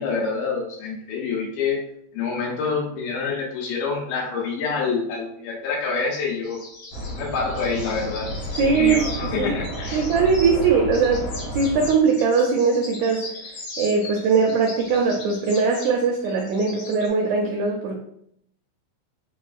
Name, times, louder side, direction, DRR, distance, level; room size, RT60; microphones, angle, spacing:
voice 1, 0.0-1.8 2.1-6.6 7.0-9.0 9.3-10.0, left 5 dB, 90° left, -2 dB, 2.3 m, -27 dB
sound 1, 6.4-10.7 10.9-17.1, left 2 dB, 75° left, 2.3 m, -39 dB
sound 2, 6.9-11.9, left 1 dB, 55° left, 2.3 m, -31 dB
voice 2, 8.6-9.5 9.9-13.3 13.8-18.0, right 5 dB, 80° right, 1 dB, 1.6 m, -21 dB
5.0 x 2.4 x 2.3 m, 0.70 s
omnidirectional pair, 3.5 m